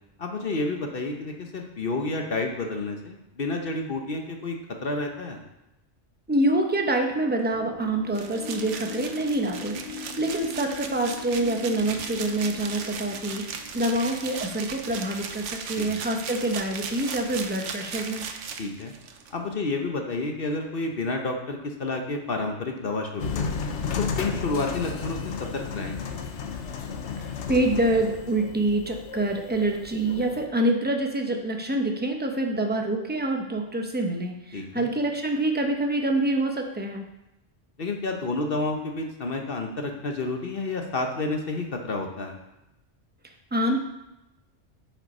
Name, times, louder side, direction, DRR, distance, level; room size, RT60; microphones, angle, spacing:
voice 1, 0.2-4.6 4.8-5.4 15.7-15.9 18.6-18.9 19.3-23.5 24.0-25.9 34.5-34.9 37.8-42.4, left 3 dB, 55° left, 3 dB, 1.1 m, -30 dB
voice 2, 6.3-13.4 13.7-18.3 27.2-37.0 43.5-43.8, right 1 dB, 10° right, 3 dB, 0.8 m, -26 dB
sound 1, 7.5-16.9, left 4 dB, 15° left, 2.9 m, -43 dB
sound 2, 8.1-19.3, right 6 dB, 90° right, 1.1 m, -37 dB
sound 3, 23.2-30.5, left 5 dB, 75° left, 1.1 m, -33 dB
8.8 x 5.8 x 5.4 m, 0.92 s
omnidirectional pair, 1.2 m